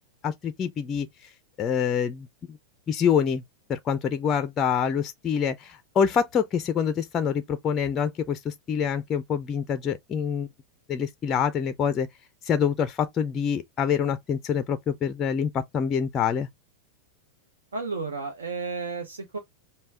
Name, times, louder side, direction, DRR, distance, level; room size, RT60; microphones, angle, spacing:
voice 1, 0.2-1.3 1.6-2.6 2.9-3.4 3.7-10.5 10.9-12.1 12.4-16.5, left 7 dB, 25° left, 0.4 m, -26 dB
voice 2, 17.7-19.4, right 4 dB, 70° right, 0.8 m, -32 dB
5.3 x 2.2 x 3.5 m
figure-of-eight pair, 90°, 0 cm